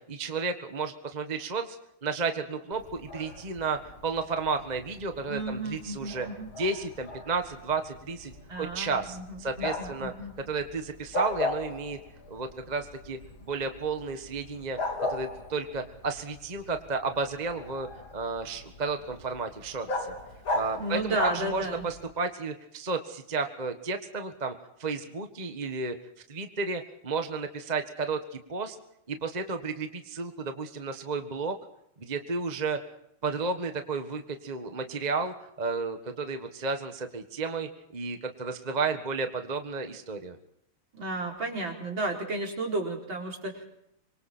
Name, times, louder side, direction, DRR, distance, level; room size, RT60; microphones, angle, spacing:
voice 1, 0.0-1.8 2.0-6.3 6.6-10.1 10.5-12.0 12.3-14.8 15.1-17.9 18.1-20.1 20.5-24.5 24.8-25.9 26.3-28.2 28.5-28.8 29.1-31.5 32.0-32.8 33.2-40.4, right 4 dB, 20° right, 6 dB, 1.4 m, -32 dB
Bark, 2.7-22.1, left 2 dB, 70° left, 4.3 m, -38 dB
voice 2, 5.3-6.5 8.5-10.3 20.8-21.9 40.9-43.6, right 2 dB, 65° right, 0 dB, 5.0 m, -33 dB
26.5 x 23.5 x 4.4 m, 0.75 s
omnidirectional pair, 2.3 m